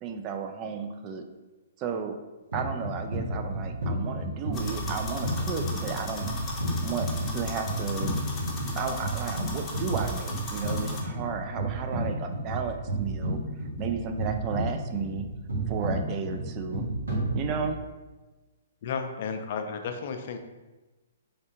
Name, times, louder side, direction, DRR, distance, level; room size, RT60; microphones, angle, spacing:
voice 1, 0.0-1.2 1.8-2.2 2.5-6.5 6.8-8.2 8.7-13.4 13.8-15.3 15.7-16.8 17.3-17.8, right 6 dB, 30° right, 5 dB, 0.3 m, -33 dB
sound 1, 2.5-17.9, right 1 dB, 85° right, 1.4 m, -32 dB
sound 2, 4.5-11.0, left 2 dB, 20° left, 0.7 m, -37 dB
voice 2, 18.8-20.4, left 5 dB, 55° left, 6 dB, 0.4 m, -33 dB
3.6 x 3.3 x 2.8 m, 1.2 s
hypercardioid pair, 135°, 0 cm